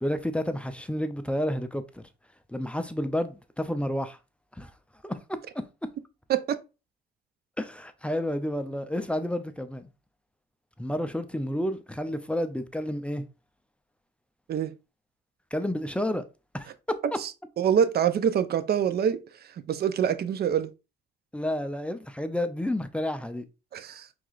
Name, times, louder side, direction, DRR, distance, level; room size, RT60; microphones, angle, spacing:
voice 1, 0.0-2.0 2.5-4.2 4.6-4.7 5.0-5.4 7.6-9.9 10.8-13.2 15.5-16.2 16.5-17.0 21.3-23.4, left 1 dB, 5° left, 0.5 m, -30 dB
voice 2, 6.3-6.6 14.5-14.7 17.2-17.3 17.6-19.2 19.7-20.7 23.7-24.1, right 8 dB, 55° right, 0.5 m, -25 dB
4.7 x 3.6 x 2.4 m
cardioid pair, 90°, 20 cm